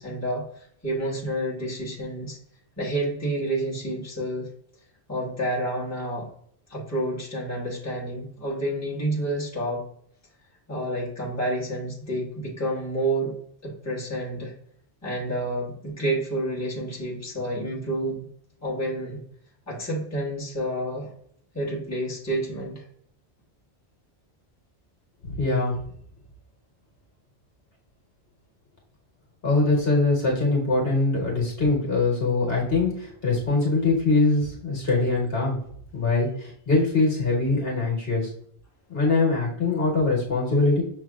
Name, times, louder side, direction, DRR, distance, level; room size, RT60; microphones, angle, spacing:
voice 1, 0.0-2.4 2.8-4.5 5.1-6.3 6.7-9.8 10.7-13.3 13.6-14.5 15.0-18.2 18.6-19.2 19.7-21.1 21.5-22.8, right 1 dB, 15° left, -5 dB, 1.3 m, -29 dB
voice 2, 25.3-25.7 29.4-35.6 35.9-38.3 38.9-40.8, left 3 dB, 60° left, -2 dB, 1.5 m, -23 dB
6.3 x 3.1 x 2.3 m, 0.65 s
omnidirectional pair, 1.1 m